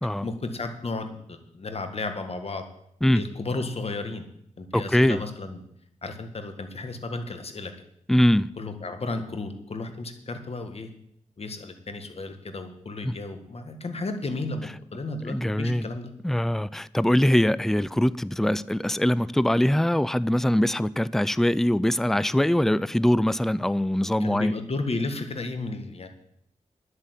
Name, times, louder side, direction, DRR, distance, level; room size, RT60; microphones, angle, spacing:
voice 1, 0.2-2.6 3.1-4.3 4.6-5.6 6.0-7.7 8.6-10.9 11.4-16.1 24.2-26.1, left 3 dB, 50° left, 1.8 m, -33 dB
voice 2, 4.7-5.2 8.1-8.5 13.0-13.2 15.3-15.9 16.2-24.5, left 1 dB, 5° left, 0.4 m, -22 dB
10.5 x 8.2 x 8.2 m
wide cardioid pair, 80°, 13 cm